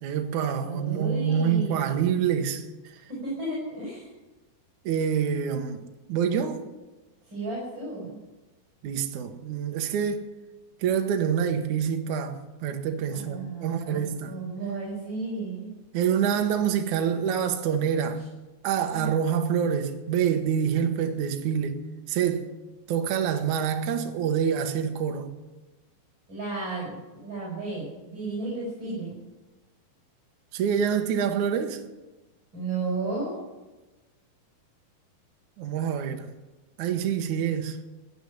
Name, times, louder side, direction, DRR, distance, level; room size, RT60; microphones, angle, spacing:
voice 1, 0.0-2.6 4.8-6.6 8.8-10.3 10.8-14.3 15.9-18.2 18.6-21.8 22.1-22.5 22.9-25.3 30.5-31.8 35.6-36.3 36.8-37.8, right 8 dB, 65° right, 2.3 m, -26 dB
voice 2, 0.6-1.9 3.1-4.1 7.2-8.2 13.1-15.7 18.9-19.1 26.3-29.2 32.5-33.4, right 3 dB, 30° right, 6.3 m, -33 dB
16.0 x 8.5 x 9.8 m
omnidirectional pair, 4.4 m